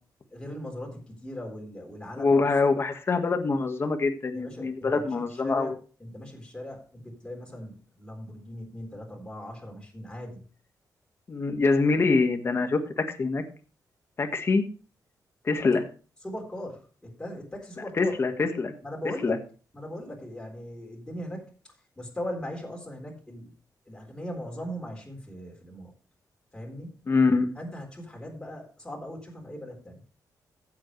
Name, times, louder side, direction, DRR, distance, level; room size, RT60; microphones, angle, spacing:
voice 1, 0.3-2.3 4.3-5.7 6.0-10.4 16.2-18.1 18.8-19.4 19.7-21.5 22.0-23.5 23.9-25.9 26.5-26.9 27.6-30.0, equal, 10° left, -1 dB, 3.9 m, -39 dB
voice 2, 2.2-5.7 11.3-13.4 14.2-14.6 15.4-15.8 18.0-18.7 19.2-19.4 27.1-27.5, left 4 dB, 35° left, 6 dB, 1.6 m, -24 dB
15.5 x 7.6 x 3.3 m, 0.37 s
wide cardioid pair, 140°, 7 cm